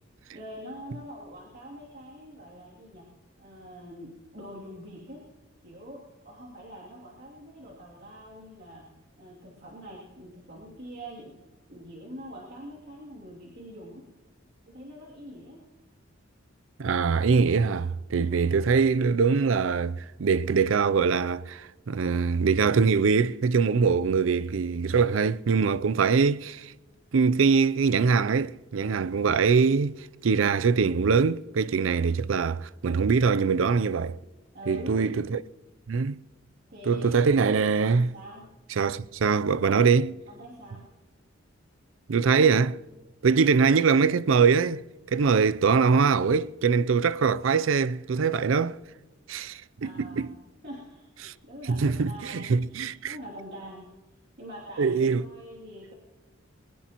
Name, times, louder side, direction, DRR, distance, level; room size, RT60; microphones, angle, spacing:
voice 1, 0.3-3.1 3.4-5.2 5.6-8.9 9.2-11.3 11.7-14.0 14.7-15.6 18.2-18.4 34.5-34.9 36.7-37.3 38.1-38.5 40.3-40.9 43.2-43.5 49.8-53.9 54.4-55.9, equal, 60° right, 2.8 m, -44 dB
voice 2, 16.8-26.7 27.1-34.2 34.7-35.4 35.9-36.2 36.9-38.1 38.8-40.2 42.1-42.8 43.2-44.8 45.1-48.8 49.3-50.3 51.2-51.3 51.7-53.2 54.8-55.3, right 5 dB, 80° right, 0.5 m, -23 dB
22.0 x 19.5 x 3.0 m
head